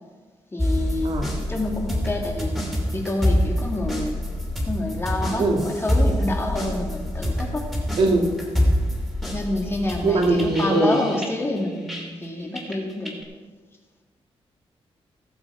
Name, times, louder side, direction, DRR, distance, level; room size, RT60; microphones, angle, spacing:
voice 1, 0.5-1.1 1.5-4.2 4.7-7.6 9.3-13.2, left 2 dB, 20° left, 0 dB, 1.9 m, -28 dB
sound 1, 0.6-12.3 12.6-13.2, equal, ahead, 2.7 m, -26 dB
voice 2, 8.0-8.3 10.0-11.0, right 2 dB, 55° right, 2 dB, 1.8 m, -20 dB
17.5 x 7.1 x 4.7 m, 1.4 s
wide cardioid pair, 135°, 11 cm